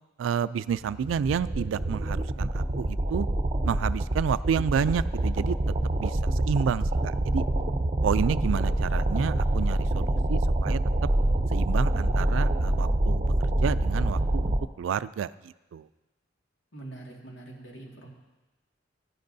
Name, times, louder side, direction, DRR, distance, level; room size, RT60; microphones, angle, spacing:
voice 1, 0.2-3.3 3.6-5.6 6.0-7.4 8.0-10.8 11.5-13.3 13.6-15.9, right 7 dB, 90° right, 17 dB, 0.3 m, -30 dB
sound 1, 0.8-14.6, right 1 dB, 35° right, 0.6 m, -26 dB
voice 2, 16.7-18.1, right 2 dB, 80° left, -1 dB, 2.0 m, -44 dB
15.5 x 10.5 x 2.7 m, 1.1 s
head